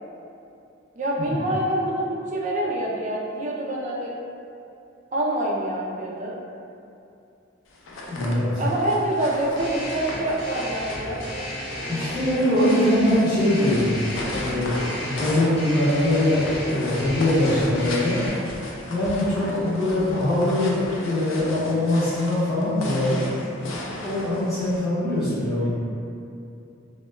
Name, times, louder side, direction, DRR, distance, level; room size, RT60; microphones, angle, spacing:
voice 1, 1.0-4.1 5.1-6.4 8.6-11.2 12.6-12.9 19.5-19.8, right 1 dB, 40° right, -3 dB, 0.3 m, -26 dB
sound 1, 7.7-24.8, left 1 dB, 90° left, 0.4 m, -36 dB
voice 2, 8.1-8.6 11.9-14.0 14.3-18.2 18.9-23.2 24.0-25.7, left 1 dB, ahead, -17 dB, 0.7 m, -22 dB
sound 2, 9.6-18.3, equal, 60° left, 0.7 m, -34 dB
2.1 x 2.0 x 3.1 m, 2.6 s
head